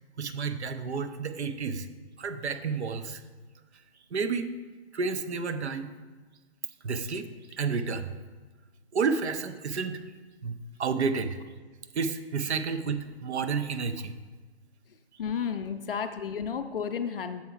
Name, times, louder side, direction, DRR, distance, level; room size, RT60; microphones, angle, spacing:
voice 1, 0.2-1.9 2.2-3.2 4.1-4.5 4.9-5.9 6.8-8.1 8.9-10.0 10.4-11.4 11.9-14.1, right 5 dB, 75° right, 10 dB, 0.6 m, -30 dB
voice 2, 15.2-17.4, left 7 dB, 55° left, 8 dB, 0.5 m, -32 dB
7.2 x 4.8 x 3.8 m, 1.4 s
figure-of-eight pair, 140°, 34 cm